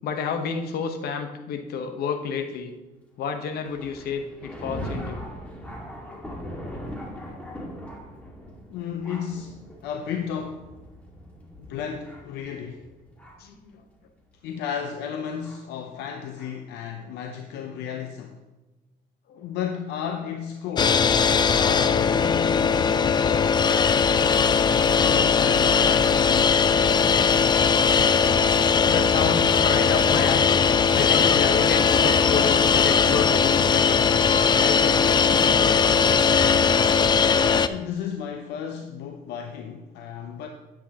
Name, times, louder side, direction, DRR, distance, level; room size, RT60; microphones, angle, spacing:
voice 1, 0.0-2.7 3.2-5.3 6.0-6.5 6.8-7.4 13.4-13.8 19.3-19.5 21.4-22.2 28.7-30.6 30.9-34.2 34.6-36.3, left 5 dB, 70° left, 6 dB, 1.0 m, -31 dB
Thunder, 3.6-13.6 14.3-14.4 15.4-15.6 16.4-16.5, equal, 10° left, 1.9 m, -40 dB
voice 2, 8.7-10.7 11.7-12.9 14.4-18.4 19.4-24.2 25.0-26.6 37.6-40.5, left 8 dB, 85° left, 4 dB, 0.7 m, -34 dB
sound 1, 20.8-37.7, left 6 dB, 25° left, 0.4 m, -19 dB
9.7 x 8.3 x 2.9 m, 1.1 s
cardioid pair, 110°, 17 cm